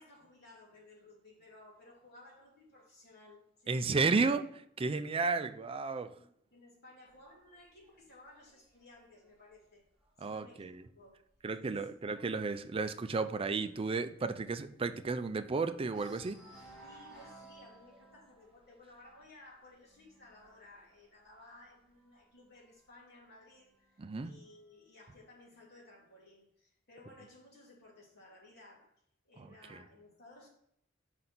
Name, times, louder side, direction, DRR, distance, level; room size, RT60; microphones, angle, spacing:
voice 1, 0.0-4.0 5.1-5.3 6.2-9.8 10.2-11.2 11.6-12.4 16.8-28.9 29.2-30.5, left 2 dB, 55° left, 2.7 m, -58 dB
voice 2, 3.7-6.1 10.2-10.8 11.4-16.4 24.0-24.3 29.4-29.8, right 4 dB, 30° right, 0.4 m, -33 dB
sound 1, 7.1-10.7 11.1-11.4 11.7-11.8 12.2-15.5 15.8-22.4 23.2-24.2, right 2 dB, 5° right, 2.3 m, -59 dB
5.3 x 4.1 x 5.9 m
head